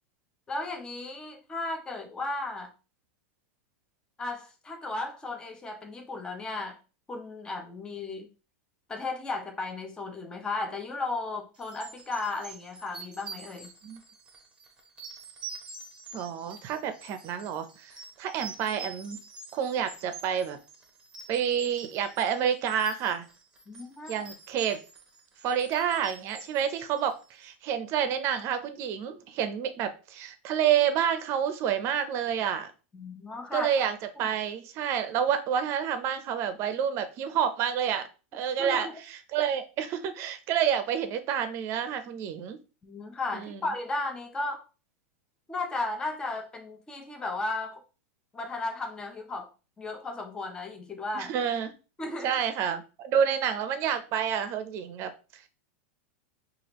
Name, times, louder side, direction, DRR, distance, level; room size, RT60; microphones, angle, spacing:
voice 1, 0.5-2.7 4.2-6.8 7.1-8.3 8.9-13.7 23.7-24.2 32.9-33.7 38.6-38.9 42.8-44.6 45.5-47.8 48.3-49.5 49.8-51.3 52.0-52.4, left 2 dB, 10° left, 3 dB, 0.7 m, -35 dB
sound 1, 11.6-27.4, right 4 dB, 15° right, 0.9 m, -46 dB
voice 2, 16.1-19.2 19.5-20.6 21.3-23.2 24.1-24.8 25.4-32.7 33.5-42.6 43.3-43.6 51.1-51.7 52.2-55.4, right 8 dB, 40° right, 10 dB, 0.6 m, -29 dB
4.7 x 2.5 x 3.0 m, 0.32 s
supercardioid pair, 145°, 7 cm